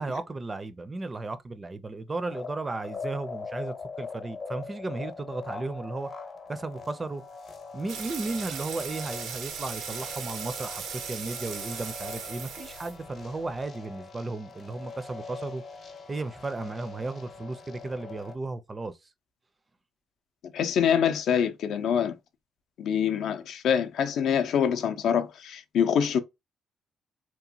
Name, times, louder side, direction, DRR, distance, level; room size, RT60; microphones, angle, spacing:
voice 1, 0.0-6.1 6.5-7.2 7.7-15.6 16.1-19.0, right 3 dB, 25° right, 0.4 m, -35 dB
sound 1, 2.1-18.3, left 4 dB, 50° left, 0.7 m, -42 dB
sound 2, 7.9-13.6, right 6 dB, 85° right, 0.6 m, -38 dB
voice 2, 20.5-22.1 22.8-26.2, left 8 dB, 75° left, 0.4 m, -25 dB
2.9 x 2.1 x 2.6 m
cardioid pair, 90°, 0 cm